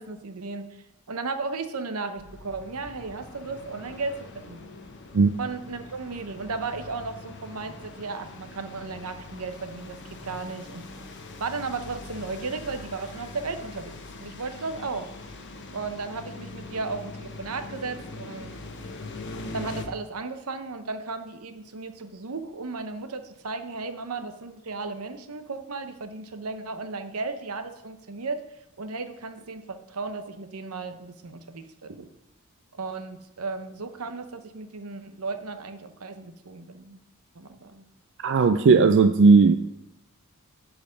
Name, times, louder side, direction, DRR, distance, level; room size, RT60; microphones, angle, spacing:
voice 1, 0.0-4.7 5.4-10.0 10.2-10.8 11.4-15.1 15.7-18.5 19.5-28.4 28.8-32.1 32.7-37.0 37.3-37.9, right 4 dB, 80° right, 8 dB, 0.9 m, -35 dB
sound 1, 2.2-19.8, left 2 dB, 55° left, 1.0 m, -42 dB
voice 2, 38.2-39.6, right 4 dB, 55° right, 8 dB, 0.4 m, -16 dB
11.0 x 4.8 x 5.1 m, 0.87 s
head